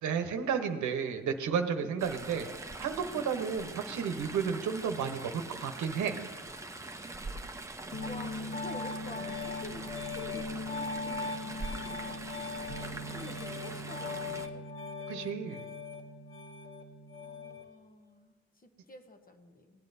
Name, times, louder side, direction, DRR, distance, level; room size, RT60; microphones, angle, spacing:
voice 1, 0.0-2.5 2.8-6.2 15.1-15.6, right 6 dB, 75° right, 7 dB, 1.0 m, -32 dB
Chatter / Stream, 2.0-14.5, right 2 dB, 10° right, 0.7 m, -43 dB
Piano, 7.9-17.6, left 3 dB, 45° left, 1.8 m, -39 dB
voice 2, 8.0-12.4 13.1-14.7 17.1-19.7, left 3 dB, 30° left, 7 dB, 1.0 m, -49 dB
17.5 x 8.8 x 2.7 m, 1.4 s
cardioid pair, 90°, 30 cm